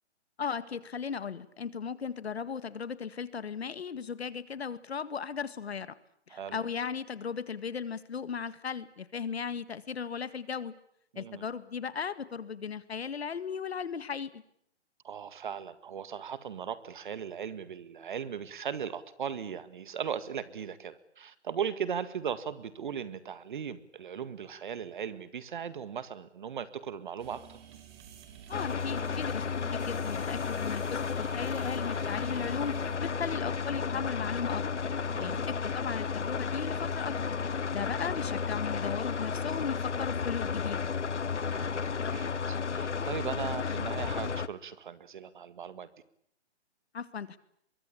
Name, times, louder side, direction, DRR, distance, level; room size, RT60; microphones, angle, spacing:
voice 1, 0.4-6.0 6.3-10.7 11.2-14.4 28.5-29.4 29.7-34.6 35.2-40.9 46.9-47.4, left 6 dB, 65° left, 15 dB, 2.0 m, -37 dB
voice 2, 11.1-11.4 15.0-27.6 35.1-35.4 41.4-45.9, right 7 dB, 45° right, 14 dB, 2.0 m, -38 dB
sound 1, 27.2-33.0, right 8 dB, 20° right, 3.4 m, -50 dB
sound 2, 28.5-44.5, left 5 dB, 85° left, 1.4 m, -33 dB
24.0 x 23.0 x 8.6 m, 0.71 s
hypercardioid pair, 165°, 34 cm